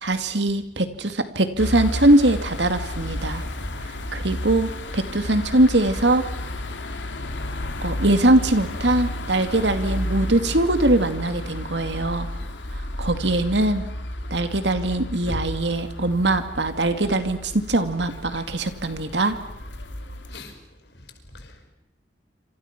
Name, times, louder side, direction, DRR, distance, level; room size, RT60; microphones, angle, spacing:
voice 1, 0.0-3.4 4.1-6.2 7.8-12.3 13.0-13.8 14.3-19.4, right 1 dB, 75° right, 8 dB, 2.4 m, -21 dB
sound 1, 1.6-20.4, left 1 dB, 85° left, 2.7 m, -32 dB
voice 2, 6.8-7.4 20.3-20.6 20.9-21.1 21.3-21.7, left 1 dB, 65° left, 5 dB, 5.3 m, -42 dB
27.5 x 26.5 x 6.0 m, 0.83 s
head